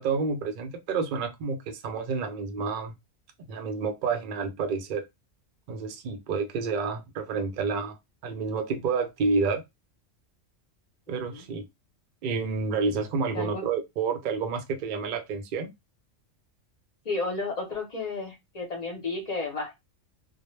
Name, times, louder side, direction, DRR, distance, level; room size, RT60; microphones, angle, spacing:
voice 1, 0.0-2.9 3.5-5.1 5.7-8.0 8.2-9.6 11.1-11.7 12.2-15.7, right 4 dB, 60° right, 0.5 m, -29 dB
voice 2, 13.3-13.7 17.0-19.8, left 3 dB, 40° left, 0.7 m, -32 dB
2.1 x 2.1 x 3.0 m
omnidirectional pair, 1.3 m